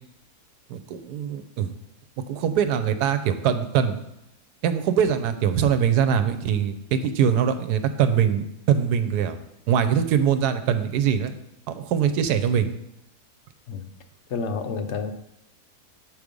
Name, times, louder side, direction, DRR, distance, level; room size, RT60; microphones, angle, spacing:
voice 1, 0.7-1.7 2.3-4.0 4.6-9.4 9.7-11.3 11.7-12.7, right 8 dB, 90° right, 9 dB, 1.2 m, -22 dB
voice 2, 14.3-15.1, left 5 dB, 60° left, 8 dB, 0.8 m, -29 dB
7.5 x 4.8 x 5.2 m, 0.83 s
omnidirectional pair, 1.7 m